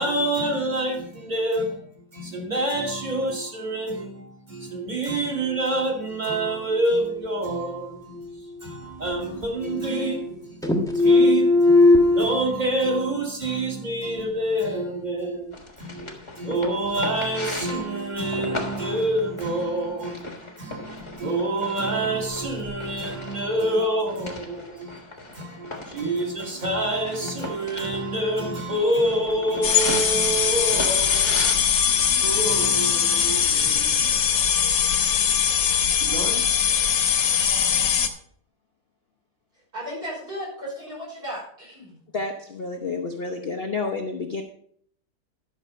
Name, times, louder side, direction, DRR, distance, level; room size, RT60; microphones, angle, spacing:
voice 1, 0.0-25.0 25.3-34.2 36.0-36.4, right 1 dB, 25° right, 2.1 m, -27 dB
sound 1, 8.2-9.1 9.4-10.4 10.6-12.2, left 2 dB, ahead, 0.9 m, -19 dB
sound 2, 15.5-31.5, left 2 dB, 15° left, 1.2 m, -37 dB
sound 3, 29.6-38.1, left 8 dB, 70° left, 1.6 m, -21 dB
voice 2, 39.7-42.0, equal, 50° right, 5.8 m, -35 dB
voice 3, 42.1-44.4, left 3 dB, 50° left, 0.7 m, -30 dB
11.5 x 6.5 x 5.2 m
omnidirectional pair, 2.1 m